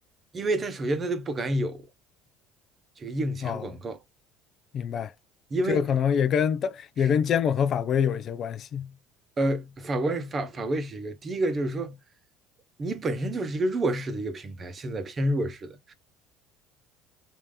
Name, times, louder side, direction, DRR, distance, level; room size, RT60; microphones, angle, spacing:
voice 1, 0.3-1.9 3.0-4.0 5.5-5.8 7.0-7.1 9.4-12.0 12.8-15.9, right 1 dB, 30° right, 0.8 m, -29 dB
voice 2, 4.7-5.1 5.7-8.9, left 8 dB, 45° left, 0.4 m, -25 dB
3.6 x 2.7 x 3.2 m
supercardioid pair, 100°, 0 cm